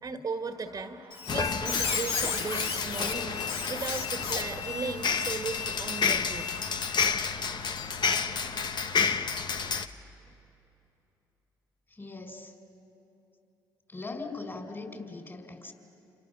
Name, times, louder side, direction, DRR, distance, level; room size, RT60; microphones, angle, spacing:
voice 1, 0.0-6.6, right 4 dB, 40° right, 6 dB, 1.8 m, -37 dB
Squeak, 1.1-7.1, left 6 dB, 65° left, 2.0 m, -35 dB
sound 1, 1.3-9.9, left 5 dB, 50° left, 1.2 m, -30 dB
voice 2, 11.9-12.5 13.9-15.7, left 3 dB, 25° left, 5 dB, 4.9 m, -40 dB
29.0 x 28.0 x 7.0 m, 2.9 s
hypercardioid pair, 55°, 10 cm